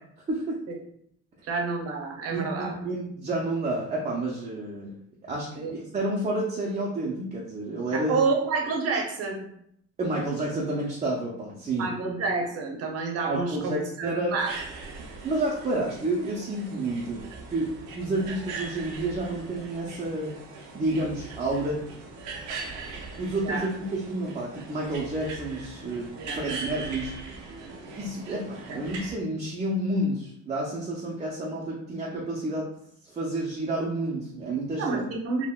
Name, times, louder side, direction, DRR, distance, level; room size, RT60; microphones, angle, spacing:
voice 1, 0.3-0.6 2.3-4.9 5.2-8.2 10.0-11.9 13.3-14.3 15.2-17.2 17.5-20.4 20.7-21.8 22.9-26.1 26.3-27.1 27.8-32.7 33.0-35.1, right 2 dB, 25° right, -4 dB, 0.4 m, -30 dB
voice 2, 1.5-2.7 5.6-5.7 7.9-9.5 11.8-14.5 23.4-23.7 26.2-26.4 34.8-35.5, right 4 dB, 55° right, 1 dB, 0.7 m, -29 dB
sound 1, 14.4-29.2, right 3 dB, 90° right, 0.7 m, -40 dB
3.5 x 2.1 x 2.3 m, 0.71 s
cardioid pair, 125°, 30 cm